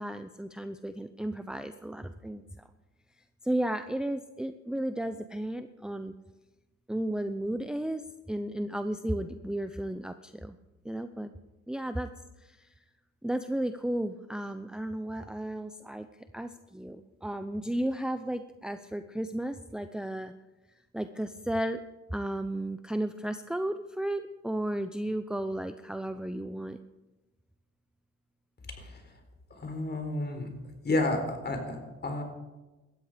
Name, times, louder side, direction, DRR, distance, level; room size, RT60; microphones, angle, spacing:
voice 1, 0.0-2.4 3.4-6.1 6.9-10.6 10.8-11.3 11.7-12.1 12.4-12.7 13.2-20.3 20.9-21.8 22.1-26.8, right 1 dB, 5° right, 9 dB, 0.7 m, -34 dB
voice 2, 29.6-30.5 30.8-32.2, left 2 dB, 35° left, 5 dB, 4.1 m, -31 dB
18.0 x 13.5 x 5.1 m, 1.1 s
cardioid pair, 90°, 30 cm